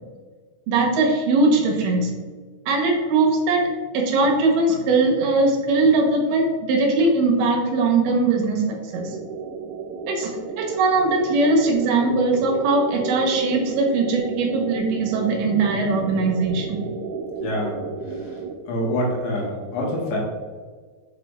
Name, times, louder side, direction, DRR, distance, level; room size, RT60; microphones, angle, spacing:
voice 1, 0.7-2.1 2.7-3.6 3.9-9.2 10.1-10.3 10.6-16.8, right 3 dB, 70° right, 0 dB, 2.1 m, -20 dB
sound 1, 8.9-18.5, right 4 dB, 90° right, 3.2 m, -33 dB
voice 2, 17.4-17.8 18.7-20.2, left 1 dB, 85° left, -3 dB, 3.7 m, -25 dB
6.8 x 5.0 x 3.3 m, 1.5 s
omnidirectional pair, 5.2 m